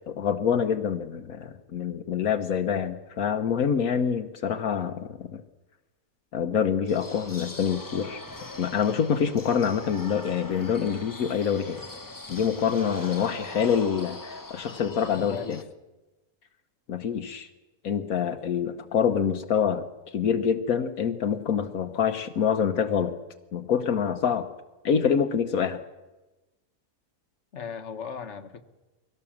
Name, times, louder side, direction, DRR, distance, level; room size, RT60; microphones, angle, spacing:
voice 1, 0.1-5.4 6.3-8.2 8.6-11.8 12.3-15.6 16.9-17.5 17.8-19.8 20.1-23.2 23.5-24.5 24.8-25.8, left 7 dB, 75° left, 7 dB, 1.4 m, -26 dB
sound 1, 6.9-15.6, left 2 dB, 15° left, 0.9 m, -41 dB
voice 2, 15.2-15.6 27.5-28.6, left 6 dB, 55° left, 8 dB, 1.5 m, -37 dB
23.0 x 17.0 x 7.3 m, 1.1 s
omnidirectional pair, 1.5 m